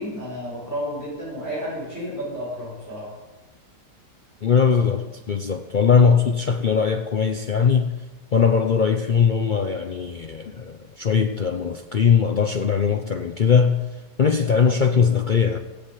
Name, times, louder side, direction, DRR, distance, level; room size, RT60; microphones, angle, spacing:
voice 1, 0.0-3.1, equal, 10° right, 6.1 m, -31 dB
voice 2, 4.4-8.0 8.3-13.8 14.2-15.6, left 6 dB, 70° left, 0.4 m, -20 dB
16.0 x 6.9 x 8.2 m
omnidirectional pair, 1.8 m